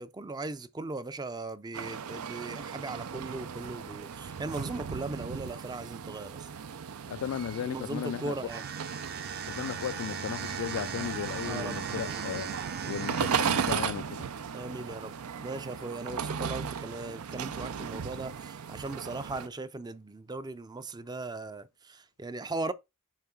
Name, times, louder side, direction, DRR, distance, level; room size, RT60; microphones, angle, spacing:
voice 1, 0.0-6.5 7.6-8.7 11.4-12.3 14.5-15.1 15.4-22.7, right 2 dB, 20° right, 0.4 m, -38 dB
sound 1, 1.7-19.5, right 7 dB, 85° right, 0.5 m, -36 dB
voice 2, 7.1-8.3 9.5-14.3, left 8 dB, 85° left, 0.3 m, -36 dB
sound 2, 8.4-14.0, right 7 dB, 45° right, 0.7 m, -39 dB
7.3 x 3.2 x 4.4 m
head